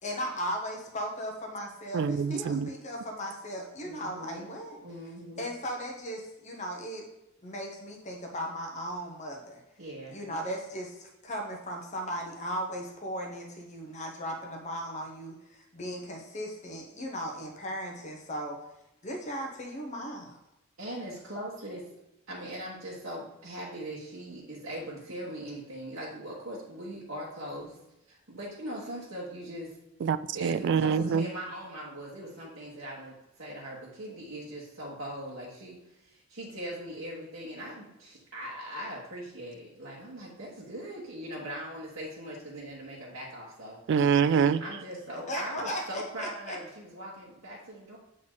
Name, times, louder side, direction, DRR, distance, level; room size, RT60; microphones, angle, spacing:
voice 1, 0.0-4.8 5.4-7.0 7.4-9.6 10.1-18.6 19.0-20.4 45.3-46.6, equal, 35° left, 1 dB, 1.0 m, -37 dB
voice 2, 1.9-2.7 30.0-31.3 43.9-44.6, right 6 dB, 60° right, 15 dB, 0.3 m, -25 dB
voice 3, 3.8-4.5 4.8-5.4 9.8-10.3 20.8-21.9 22.3-27.8 28.1-29.8 30.3-43.8 44.6-48.0, right 1 dB, 90° right, -8 dB, 1.4 m, -40 dB
7.5 x 3.9 x 3.9 m, 0.90 s
head